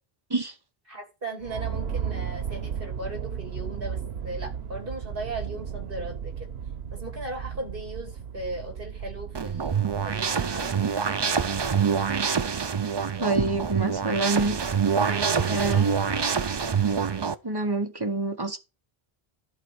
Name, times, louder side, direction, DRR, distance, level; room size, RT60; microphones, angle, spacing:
voice 1, 0.9-4.0 4.2-6.5 6.9-11.2 15.1-15.9, right 2 dB, 60° right, 2.9 m, -37 dB
sound 1, 1.4-11.0, right 7 dB, 85° right, 1.2 m, -35 dB
sound 2, 9.3-17.3, right 6 dB, 40° right, 0.4 m, -25 dB
voice 2, 13.2-14.6 15.5-15.8 17.4-18.6, right 3 dB, 25° right, 1.1 m, -27 dB
11.5 x 4.1 x 6.2 m
omnidirectional pair, 1.0 m